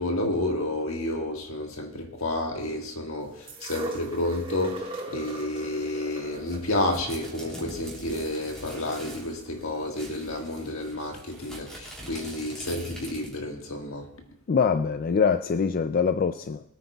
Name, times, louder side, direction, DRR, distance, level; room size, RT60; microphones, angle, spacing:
voice 1, 0.0-14.1, left 1 dB, 70° left, 1.7 m, -30 dB
sound 1, 3.5-9.5 10.4-10.5, right 2 dB, 25° right, 1.7 m, -40 dB
sound 2, 6.3-9.3 9.6-9.7 9.9-13.5, right 1 dB, 5° left, 3.3 m, -43 dB
voice 2, 14.5-16.6, left 6 dB, 40° left, 0.4 m, -24 dB
21.0 x 9.3 x 2.3 m
head